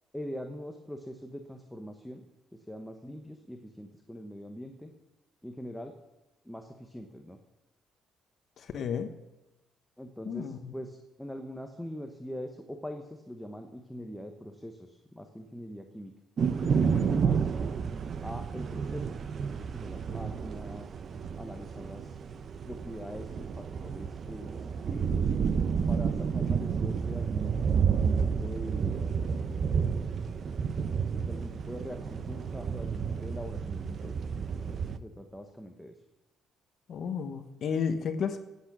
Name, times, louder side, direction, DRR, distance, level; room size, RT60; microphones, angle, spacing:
voice 1, 0.1-2.3 2.5-4.9 5.4-5.9 6.4-7.4 10.0-16.1 16.5-17.5 18.2-19.2 19.5-20.9 21.4-22.2 22.7-25.3 25.9-27.9 28.2-29.7 31.1-34.2 34.6-36.0, equal, 5° left, 4 dB, 1.0 m, -43 dB
voice 2, 8.6-9.1 10.2-10.7 16.6-17.3 36.9-38.4, left 6 dB, 50° left, 8 dB, 1.1 m, -33 dB
sound 1, 16.4-35.0, right 6 dB, 40° right, 0.7 m, -30 dB
17.0 x 8.4 x 6.2 m, 0.98 s
cardioid pair, 140°, 0 cm